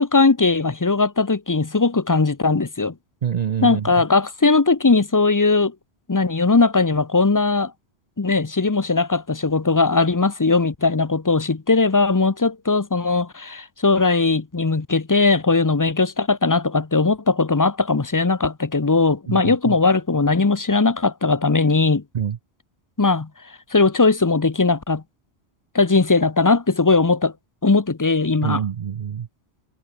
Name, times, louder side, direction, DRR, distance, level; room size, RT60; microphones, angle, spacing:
voice 1, 0.0-2.9 3.6-5.7 6.1-7.7 8.2-22.0 23.0-23.3 23.7-25.0 25.7-27.3 27.6-28.6, left 3 dB, 20° left, 0.6 m, -19 dB
voice 2, 3.2-3.9 19.3-19.8 22.1-22.4 28.4-29.3, right 8 dB, 50° right, 0.6 m, -26 dB
omnidirectional pair, 1.1 m